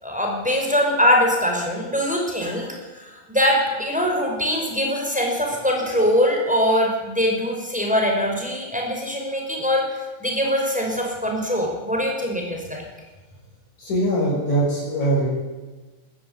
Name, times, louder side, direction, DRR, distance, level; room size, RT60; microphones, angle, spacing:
voice 1, 0.0-12.8, equal, ahead, 0 dB, 5.0 m, -22 dB
voice 2, 13.8-15.3, right 1 dB, 40° left, -6 dB, 7.6 m, -22 dB
22.0 x 13.0 x 9.8 m, 1.2 s
omnidirectional pair, 5.1 m